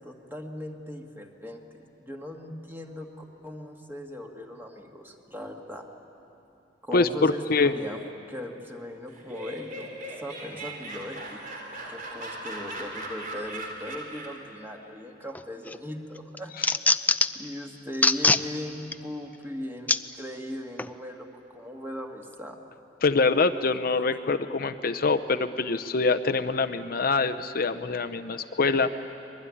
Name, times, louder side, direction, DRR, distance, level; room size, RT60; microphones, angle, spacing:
voice 1, 0.0-5.9 6.8-8.0 8.3-9.9 10.2-11.4 11.9-16.8 17.3-22.6, left 1 dB, 10° right, 2 dB, 2.0 m, -39 dB
voice 2, 6.9-7.7 16.6-16.7 23.0-29.1, left 3 dB, 55° left, 10 dB, 0.7 m, -25 dB
Laughter, 9.1-14.5, right 1 dB, 50° right, 3.6 m, -39 dB
sound 1, 15.3-15.8 16.2-17.4 17.9-18.4 18.9-19.0 19.9-20.0 20.8-20.9, left 3 dB, 10° left, 0.5 m, -22 dB
25.0 x 22.0 x 9.9 m, 2.9 s
head